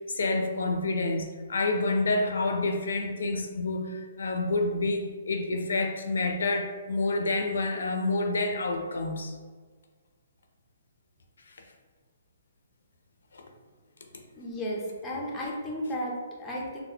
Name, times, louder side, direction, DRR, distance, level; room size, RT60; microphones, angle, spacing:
voice 1, 0.1-9.3 13.3-13.4, left 2 dB, 90° left, 4 dB, 0.5 m, -28 dB
voice 2, 14.4-16.8, equal, 10° left, -4 dB, 0.4 m, -34 dB
3.9 x 2.0 x 2.7 m, 1.5 s
hypercardioid pair, 175°, 0 cm